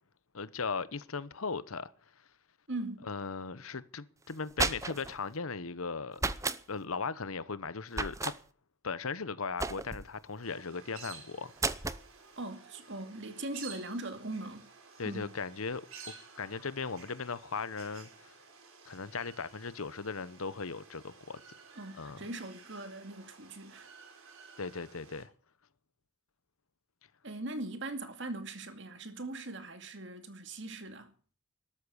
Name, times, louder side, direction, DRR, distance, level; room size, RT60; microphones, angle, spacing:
voice 1, 0.3-1.9 3.0-6.2 6.7-8.3 8.8-11.5 15.0-18.3 18.8-21.4 22.0-22.2 24.6-25.3, left 4 dB, 85° left, 1.0 m, -38 dB
voice 2, 2.7-3.1 12.4-14.6 15.0-15.3 21.8-23.9 27.2-31.1, right 2 dB, 55° right, 2.4 m, -40 dB
sound 1, 4.3-5.2 6.2-6.6 7.9-8.4 9.6-10.1 11.6-12.0, right 3 dB, 15° right, 0.7 m, -33 dB
sound 2, 10.4-25.2, right 5 dB, 80° right, 4.7 m, -53 dB
13.0 x 13.0 x 7.1 m
head